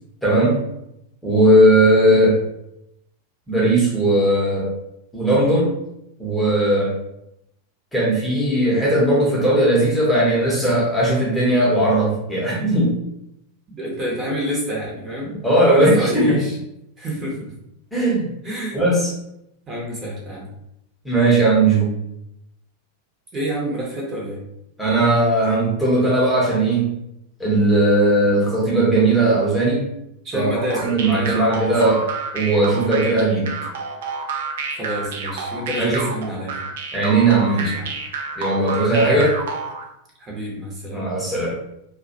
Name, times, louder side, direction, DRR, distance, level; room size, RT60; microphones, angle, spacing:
voice 1, 0.2-0.6 1.2-2.4 3.5-4.7 5.1-5.7 6.2-7.0 7.9-13.0 15.3-16.4 17.9-18.3 18.7-19.1 21.0-21.9 24.8-26.9 27.4-29.9 30.3-32.1 32.3-33.6 35.8-36.1 36.9-37.7 38.4-39.3 40.9-41.6, right 1 dB, 5° left, -5 dB, 0.7 m, -18 dB
voice 2, 13.7-15.3 15.7-16.6 17.0-17.5 18.4-18.8 19.7-20.5 23.3-24.4 30.2-31.9 34.7-36.6 37.5-37.9 39.0-39.2 40.2-41.0, equal, 25° right, -3 dB, 0.7 m, -28 dB
sound 1, 30.7-39.8, right 4 dB, 55° right, 0.4 m, -29 dB
2.3 x 2.1 x 2.6 m, 0.81 s
figure-of-eight pair, 90°, 0 cm